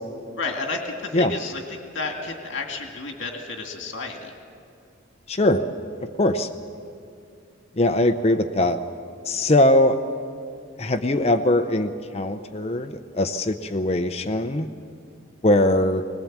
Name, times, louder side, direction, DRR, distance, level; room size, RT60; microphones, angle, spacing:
voice 1, 0.4-4.3, left 3 dB, 65° left, 3 dB, 2.0 m, -31 dB
voice 2, 5.3-5.6 6.2-6.5 7.8-8.8 9.3-10.0 10.8-14.7 15.4-16.0, left 1 dB, 30° left, 8 dB, 0.7 m, -21 dB
21.5 x 20.0 x 7.4 m, 2.4 s
head